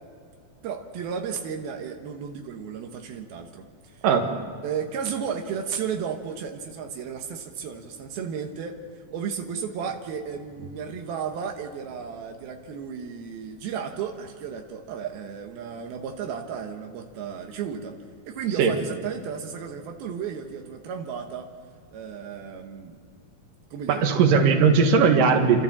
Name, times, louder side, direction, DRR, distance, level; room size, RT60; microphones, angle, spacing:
voice 1, 0.6-4.0 4.6-17.9 18.3-21.5 21.9-23.0 23.7-24.1, right 7 dB, 85° right, 3 dB, 3.1 m, -34 dB
voice 2, 23.9-25.6, right 5 dB, 65° right, 4 dB, 3.2 m, -19 dB
29.5 x 13.5 x 7.3 m, 2.3 s
omnidirectional pair, 4.2 m